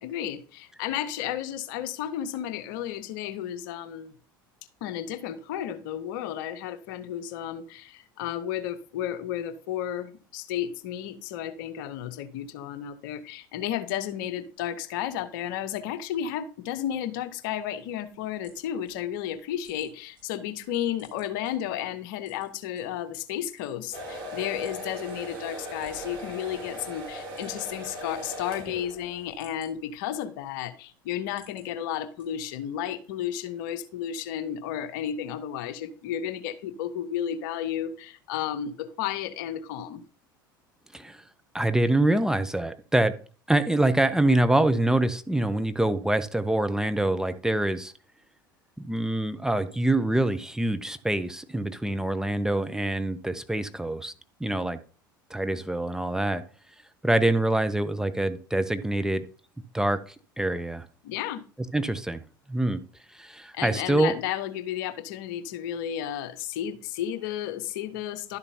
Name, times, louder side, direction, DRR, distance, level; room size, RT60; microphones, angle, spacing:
voice 1, 0.0-4.2 4.8-40.0 61.0-61.4 63.5-68.4, left 10 dB, 65° left, 12 dB, 0.8 m, -33 dB
sound 1, 18.1-20.2 20.6-21.5 22.2-22.8 23.3-24.3 24.6-24.8 25.1-25.2 25.7-26.5 26.8-26.9 27.2-27.8 28.1-28.8 29.2-30.6 31.0-31.7 32.2-32.6, right 2 dB, 80° right, 4.2 m, -57 dB
sound 2, 23.9-29.4, equal, 50° right, 4.5 m, -39 dB
voice 2, 41.5-43.1 43.5-47.9 48.8-54.1 54.4-54.8 55.3-56.4 57.0-59.2 59.7-60.9 61.7-62.2 62.5-62.8 63.1-64.1, right 1 dB, 5° right, 10 dB, 0.6 m, -25 dB
11.5 x 6.8 x 2.8 m, 0.39 s
figure-of-eight pair, 70°, 12 cm